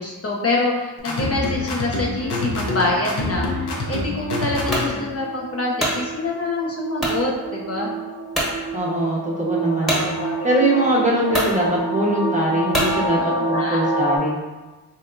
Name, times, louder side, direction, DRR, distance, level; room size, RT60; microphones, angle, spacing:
voice 1, 0.0-3.5 3.9-7.9 9.8-11.1 13.2-13.8, left 2 dB, 40° left, -3 dB, 0.5 m, -26 dB
sound 1, 1.0-5.1, left 2 dB, 80° left, 0.7 m, -26 dB
sound 2, 2.2-14.2, right 2 dB, 85° right, 0.7 m, -29 dB
sound 3, 4.7-4.9 5.5-6.0 7.0-7.2 7.8-7.9 8.3-8.5 9.9-10.1 10.8-10.9 11.3-11.5 12.7-13.0, equal, ahead, 1.1 m, -23 dB
voice 2, 8.7-10.1 10.4-14.4, right 1 dB, 20° right, -4 dB, 0.7 m, -22 dB
3.4 x 2.8 x 2.5 m, 1.2 s
wide cardioid pair, 80°, 39 cm